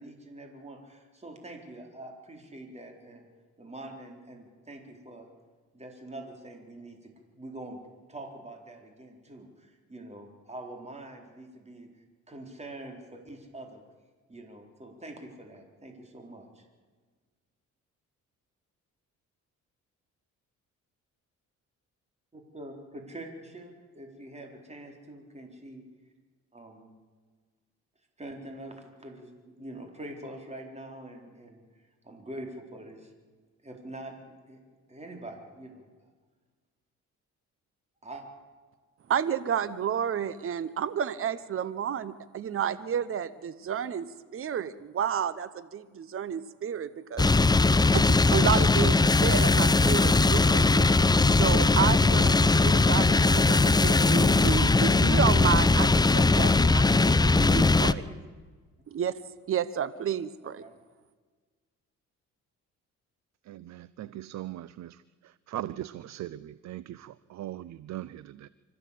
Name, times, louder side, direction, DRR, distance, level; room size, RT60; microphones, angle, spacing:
voice 1, 0.0-3.3 3.6-5.3 5.7-7.1 7.4-7.8 8.1-11.9 12.3-13.8 14.3-16.7 22.3-25.8 26.5-26.9 28.2-33.1 33.6-34.2 34.5-34.6 34.9-36.1 38.0-38.2 56.9-57.2 58.0-58.2 60.4-60.8, right 1 dB, 20° right, 2 dB, 4.1 m, -44 dB
voice 2, 39.1-44.0 44.3-47.3 47.9-50.9 51.3-58.0 58.9-59.1 59.5-60.6, right 8 dB, 45° right, 15 dB, 1.0 m, -31 dB
sound 1, 47.2-57.9, left 3 dB, 15° left, 0.7 m, -20 dB
voice 3, 63.5-65.0 65.5-68.5, right 13 dB, 65° right, 17 dB, 0.7 m, -39 dB
25.5 x 14.5 x 8.5 m, 1.4 s
cardioid pair, 90°, 30 cm